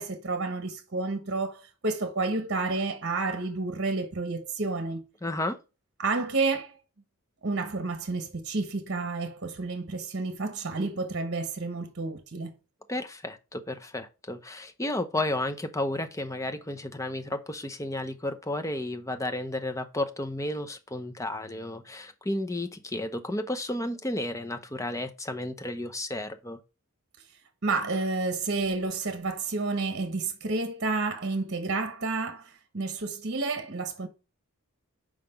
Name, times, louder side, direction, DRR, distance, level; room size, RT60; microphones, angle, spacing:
voice 1, 0.0-5.0 6.0-6.8 7.4-12.5 27.6-34.1, right 3 dB, 50° right, 1.1 m, -30 dB
voice 2, 5.2-5.6 12.9-26.6, left 1 dB, 15° left, 0.7 m, -32 dB
5.8 x 5.0 x 5.7 m
head